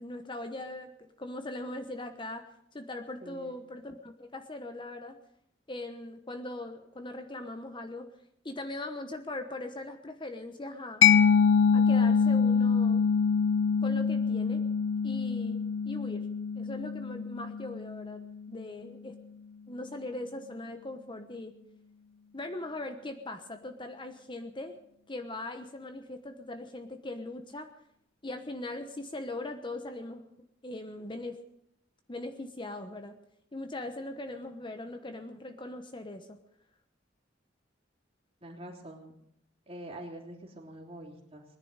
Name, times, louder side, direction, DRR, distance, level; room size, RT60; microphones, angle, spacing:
voice 1, 0.0-5.2 5.7-8.1 8.4-11.0 11.7-13.0 13.8-14.6 15.0-16.3 16.5-18.2 18.5-19.2 19.7-21.6 22.3-24.8 25.1-27.7 28.2-30.3 30.6-31.4 32.1-33.2 33.5-36.4, left 2 dB, 25° left, 7 dB, 1.1 m, -40 dB
voice 2, 3.2-3.5 38.4-39.2 39.7-41.4, right 1 dB, 30° right, 1 dB, 3.3 m, -45 dB
Mallet percussion, 11.0-18.4, left 6 dB, 80° left, 0.5 m, -25 dB
20.0 x 10.5 x 6.6 m, 0.75 s
head